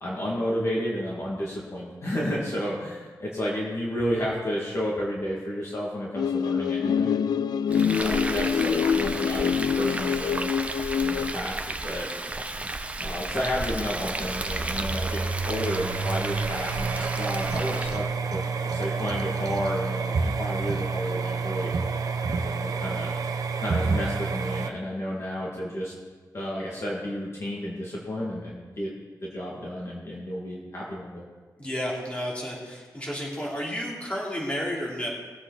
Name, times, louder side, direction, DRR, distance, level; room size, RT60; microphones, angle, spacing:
voice 1, 0.0-7.2 7.7-9.5 9.8-10.5 11.0-12.1 13.0-21.7 22.3-23.1 23.6-25.9 26.3-28.9 29.2-31.2, equal, 45° left, -5 dB, 2.2 m, -31 dB
sound 1, 6.2-11.3, left 7 dB, 90° left, 0.4 m, -25 dB
Frying (food), 7.7-18.1, right 2 dB, 20° right, 0.7 m, -33 dB
sound 2, 12.5-24.7, right 4 dB, 65° right, 0.9 m, -29 dB
voice 2, 31.6-35.1, equal, 20° left, -4 dB, 3.3 m, -31 dB
20.0 x 7.9 x 4.1 m, 1.4 s
wide cardioid pair, 150°, 7 cm